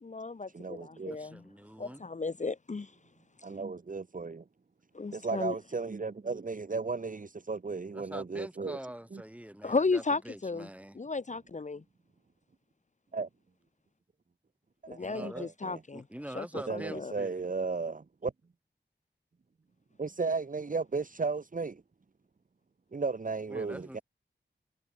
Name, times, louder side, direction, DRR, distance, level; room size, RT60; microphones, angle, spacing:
voice 1, 0.0-1.4 1.8-2.9 4.9-5.5 9.6-10.7 10.9-11.8 14.9-16.0 16.3-16.4 16.7-17.1, left 4 dB, 40° left, 0.9 m, -34 dB
voice 2, 0.5-1.2 3.4-4.4 5.1-8.8 9.1-9.2 13.1-13.3 14.9-15.8 16.7-18.3 20.0-21.8 22.9-24.0, right 4 dB, 45° right, 1.3 m, -35 dB
voice 3, 1.1-2.1 7.9-11.0 15.0-15.5 15.9-17.5 23.5-24.0, right 1 dB, 5° right, 6.1 m, -45 dB
wide cardioid pair, 85°, 19 cm